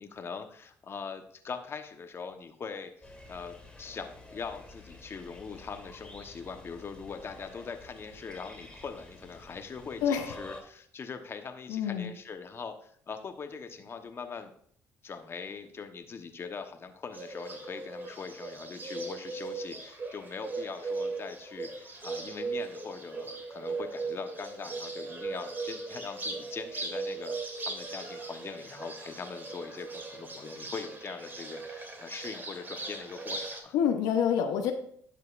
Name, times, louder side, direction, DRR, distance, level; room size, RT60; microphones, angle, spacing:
voice 1, 0.0-14.5 15.0-27.4 27.6-33.7, left 5 dB, 40° left, 7 dB, 1.0 m, -42 dB
sound 1, 3.0-10.6, left 2 dB, 15° left, 2.9 m, -49 dB
voice 2, 11.7-12.1 33.7-34.7, left 8 dB, 80° left, 5 dB, 0.8 m, -27 dB
Bird, 17.1-33.6, right 3 dB, 30° right, 2.3 m, -38 dB
10.5 x 6.6 x 2.5 m, 0.62 s
supercardioid pair, 80°, 6 cm